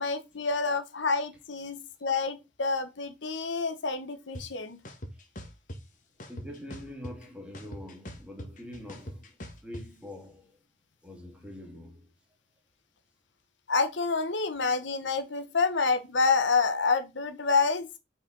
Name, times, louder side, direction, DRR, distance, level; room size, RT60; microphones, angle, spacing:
voice 1, 0.0-4.8 13.7-18.0, left 4 dB, 80° left, 1.0 m, -28 dB
sound 1, 4.3-4.4 4.8-5.8 6.2-7.3 7.5-9.8, equal, 45° left, 1.4 m, -41 dB
voice 2, 6.3-9.3 9.6-10.6 11.0-12.1, left 1 dB, 5° right, 2.0 m, -44 dB
5.4 x 4.8 x 3.8 m
head